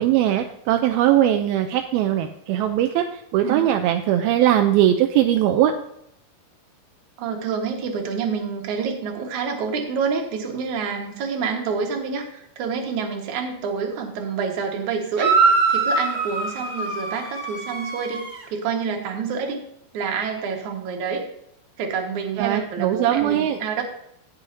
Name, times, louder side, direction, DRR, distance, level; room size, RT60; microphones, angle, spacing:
voice 1, 0.0-5.7 22.4-23.6, right 12 dB, 80° right, 6 dB, 2.4 m, -20 dB
voice 2, 7.2-18.2 18.5-19.6 19.9-21.2 21.8-23.8, right 5 dB, 55° right, 2 dB, 2.7 m, -27 dB
sound 1, 15.2-18.4, right 4 dB, 30° right, 1.3 m, -22 dB
18.0 x 6.5 x 2.8 m, 0.75 s
omnidirectional pair, 4.6 m